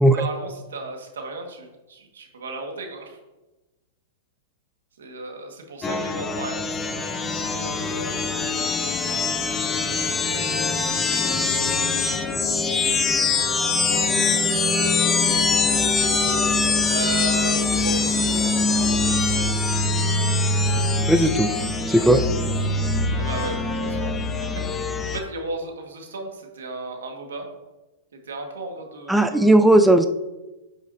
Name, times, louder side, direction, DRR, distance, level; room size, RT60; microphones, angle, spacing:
voice 1, 0.1-3.2 5.0-7.1 7.5-8.2 9.6-10.4 11.8-14.2 15.2-15.9 16.9-18.9 19.3-19.4 22.1-22.4 23.2-24.5 25.1-27.5 28.3-29.6, right 3 dB, 90° right, 2 dB, 1.7 m, -35 dB
sound 1, 5.8-25.2, left 3 dB, 15° left, 0.7 m, -23 dB
voice 2, 21.1-21.5 21.9-22.2 29.1-30.1, right 1 dB, ahead, 7 dB, 0.4 m, -16 dB
10.0 x 6.3 x 2.7 m, 1.1 s
hypercardioid pair, 135°, 0 cm